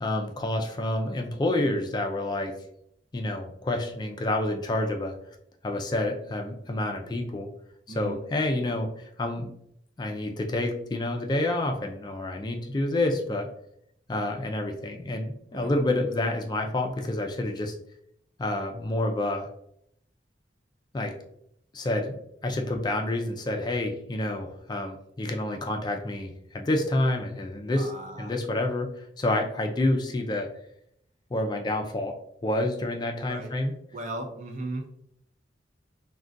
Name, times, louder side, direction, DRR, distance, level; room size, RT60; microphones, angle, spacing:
voice 1, 0.0-2.5 3.1-5.1 5.6-7.5 7.9-9.5 10.0-13.5 14.1-17.8 18.4-19.5 20.9-21.1 21.7-27.9 28.2-30.5 31.3-32.1 32.4-33.7, left 1 dB, 25° left, 3 dB, 0.3 m, -28 dB
voice 2, 7.9-8.2 15.5-15.7 27.8-28.3 33.3-33.5 33.9-34.9, right 2 dB, 40° right, 4 dB, 0.4 m, -36 dB
3.6 x 2.2 x 2.5 m, 0.73 s
head